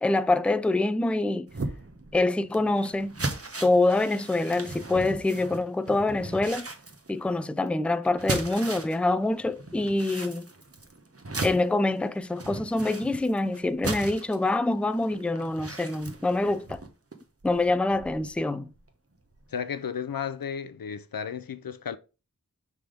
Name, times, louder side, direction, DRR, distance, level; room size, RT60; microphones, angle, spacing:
voice 1, 0.0-1.5 2.1-3.2 3.6-6.7 7.1-10.5 11.4-16.8 17.4-18.7, left 2 dB, 5° left, 0.4 m, -25 dB
sound 1, 1.5-9.1 9.4-18.4 18.7-18.9 19.3-19.4, right 2 dB, 45° right, 1.1 m, -37 dB
voice 2, 19.5-22.0, left 7 dB, 85° left, 0.5 m, -33 dB
5.9 x 3.5 x 5.0 m
wide cardioid pair, 50°, 34 cm